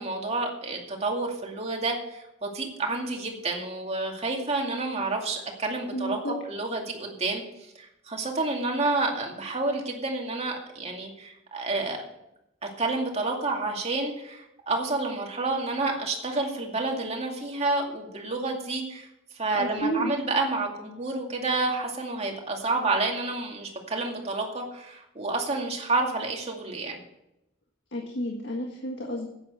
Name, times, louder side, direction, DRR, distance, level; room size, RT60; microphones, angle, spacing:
voice 1, 0.0-7.4 7.7-12.0 12.6-19.1 19.3-27.0, right 3 dB, 35° right, 1 dB, 2.4 m, -29 dB
voice 2, 5.9-6.4 19.6-20.1 27.9-29.3, right 1 dB, 65° left, 1 dB, 1.7 m, -31 dB
10.5 x 9.0 x 7.7 m, 0.86 s
head